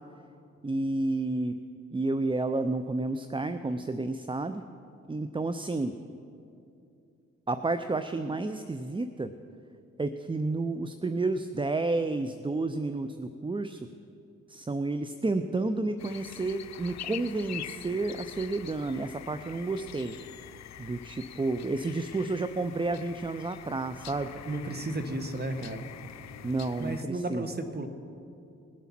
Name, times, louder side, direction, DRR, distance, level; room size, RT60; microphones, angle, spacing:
voice 1, 0.6-1.6 1.9-4.6 5.1-6.0 7.5-9.3 10.0-13.9 14.5-20.2 20.8-24.3 26.4-27.4, right 2 dB, 15° right, 10 dB, 0.6 m, -31 dB
sound 1, 16.0-27.0, left 11 dB, 60° left, 0.6 m, -45 dB
voice 2, 24.4-25.8 26.8-27.9, right 2 dB, 30° right, 7 dB, 1.5 m, -33 dB
20.5 x 7.1 x 5.9 m, 2.6 s
supercardioid pair, 50°, 31 cm